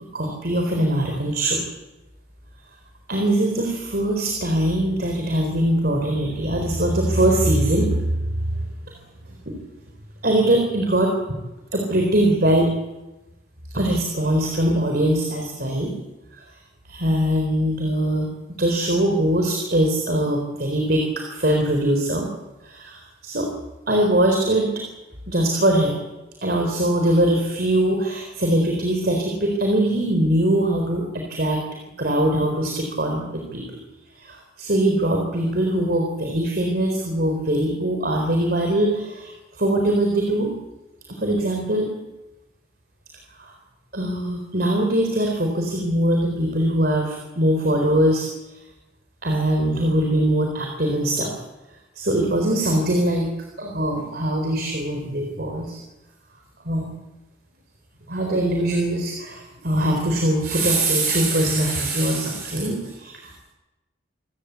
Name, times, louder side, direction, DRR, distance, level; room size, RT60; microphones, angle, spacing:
voice 1, 0.1-1.6 3.1-8.1 8.5-8.7 9.5-9.6 10.2-11.1 11.7-12.8 13.7-15.9 16.3-16.4 16.8-18.3 18.6-22.3 22.6-23.5 23.9-24.8 25.3-26.0 26.4-31.6 32.0-33.8 34.2-40.5 41.1-42.0 43.4-43.5 43.9-48.3 49.2-51.3 52.0-53.3 53.6-55.8 56.6-56.9 58.1-63.4, right 1 dB, 50° right, 2 dB, 4.0 m, -22 dB
26.5 x 17.0 x 8.3 m, 1.0 s
head